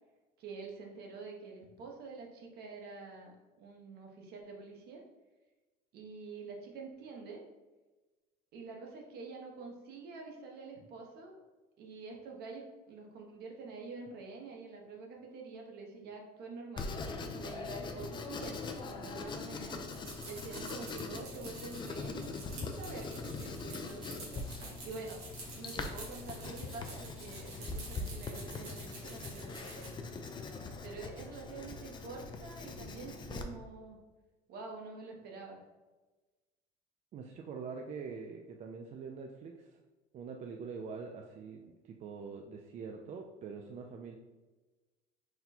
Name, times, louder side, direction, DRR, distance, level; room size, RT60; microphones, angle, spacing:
voice 1, 0.4-5.0 5.9-7.4 8.5-11.3 11.8-19.8 20.2-24.4 24.8-25.2 25.5-30.0 30.8-34.0 34.5-35.6, right 4 dB, 60° right, 1 dB, 1.0 m, -47 dB
Writing, 16.8-33.4, left 4 dB, 25° left, 0.4 m, -42 dB
sound 1, 19.8-29.9, right 3 dB, 85° right, 1.5 m, -49 dB
voice 2, 37.1-39.7 40.1-44.2, right 5 dB, 35° right, 2 dB, 0.4 m, -44 dB
4.1 x 2.2 x 4.2 m, 1.2 s
supercardioid pair, 105°, 19 cm